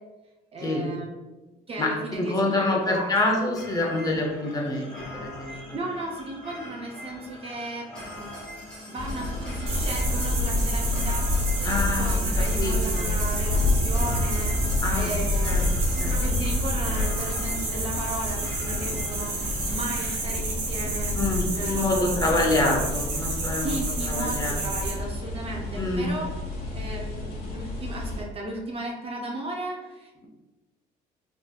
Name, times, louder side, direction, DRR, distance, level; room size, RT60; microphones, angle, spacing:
voice 1, 0.5-1.2 1.7-3.1 5.5-7.8 8.2-8.3 8.9-11.2 11.6-15.6 16.1-21.1 21.5-22.2 23.6-26.3 26.7-30.3, right 1 dB, 35° right, 0 dB, 0.5 m, -35 dB
voice 2, 1.8-5.5 11.6-13.2 14.8-15.1 15.4-15.7 16.0-16.2 21.2-23.8 24.1-24.8 25.8-26.1, left 2 dB, 20° left, -1 dB, 0.6 m, -27 dB
sound 1, 3.5-20.1, left 1 dB, 5° left, 1.3 m, -42 dB
sound 2, 9.0-28.2, left 2 dB, 65° left, 0.9 m, -29 dB
sound 3, 9.7-24.9, right 2 dB, 75° right, 1.1 m, -31 dB
3.4 x 2.5 x 2.3 m, 1.1 s
cardioid pair, 110°, 17 cm